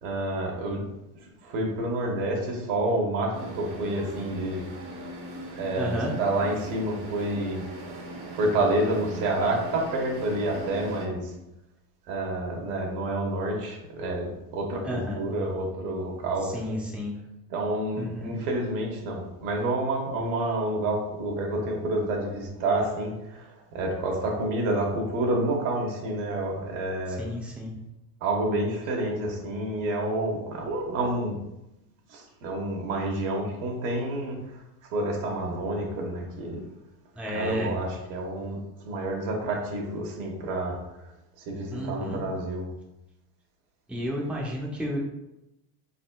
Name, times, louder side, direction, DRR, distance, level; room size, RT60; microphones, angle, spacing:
voice 1, 0.0-0.8 1.4-4.7 5.5-7.7 8.3-11.4 12.1-16.8 17.5-27.3 28.2-31.4 32.1-34.5 34.9-36.7 37.3-40.8 41.4-42.7, right 1 dB, 70° right, 0 dB, 1.2 m, -29 dB
sound 1, 3.3-11.1, right 1 dB, 50° right, 1.1 m, -40 dB
voice 2, 5.8-6.1 14.8-15.2 16.5-17.1 18.0-18.3 27.2-27.7 37.2-37.7 41.7-42.2 43.9-45.0, equal, 5° right, -3 dB, 0.5 m, -31 dB
4.5 x 4.1 x 2.2 m, 0.91 s
cardioid pair, 150°, 49 cm